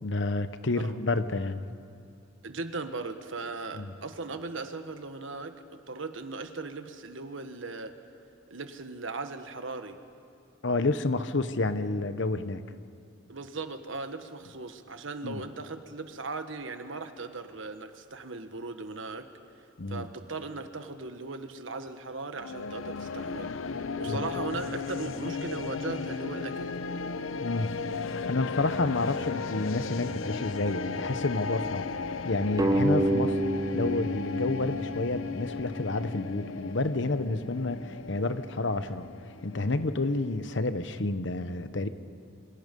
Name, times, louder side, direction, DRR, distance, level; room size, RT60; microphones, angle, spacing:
voice 1, 0.0-1.7 3.7-3.9 10.6-12.6 15.2-15.4 19.8-20.1 24.0-24.3 27.4-27.8 28.1-31.8 32.2-39.1 39.4-41.9, left 2 dB, 65° left, 11 dB, 1.0 m, -30 dB
voice 2, 2.4-7.9 8.5-10.0 13.3-19.3 19.9-23.5 24.0-26.7, right 3 dB, 75° right, 8 dB, 1.4 m, -38 dB
sound 1, 22.4-40.6, left 4 dB, 90° left, 0.7 m, -35 dB
sound 2, 32.6-35.8, right 2 dB, 15° right, 0.5 m, -29 dB
27.5 x 25.0 x 5.4 m, 2.4 s
head